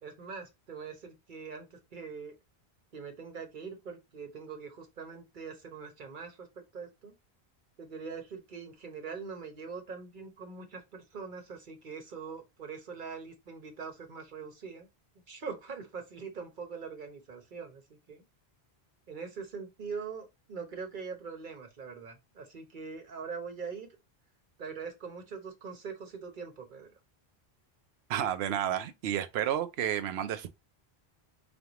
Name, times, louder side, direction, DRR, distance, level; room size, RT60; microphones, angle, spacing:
voice 1, 0.0-2.3 2.9-6.5 6.7-7.1 7.8-14.9 15.3-18.2 19.1-23.9 24.6-26.9, right 5 dB, 50° right, 1.1 m, -42 dB
voice 2, 28.1-30.5, right 10 dB, 80° right, 0.8 m, -31 dB
5.2 x 2.3 x 2.9 m
omnidirectional pair, 1.1 m